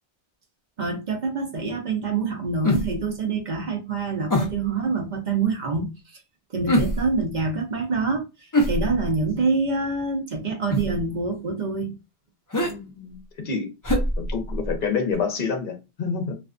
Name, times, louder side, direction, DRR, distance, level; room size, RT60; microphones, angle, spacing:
voice 1, 0.8-6.2 6.5-12.0, right 4 dB, 50° right, 0.6 m, -26 dB
sound 1, 2.6-3.1 4.3-4.7 6.7-7.2 8.5-9.3 10.7-11.0 12.5-12.7 13.8-14.8 15.1-15.2, left 1 dB, 30° left, 0.4 m, -24 dB
voice 2, 12.6-13.7 14.2-16.3, left 5 dB, 55° left, 0.8 m, -28 dB
2.5 x 2.1 x 2.4 m
omnidirectional pair, 1.1 m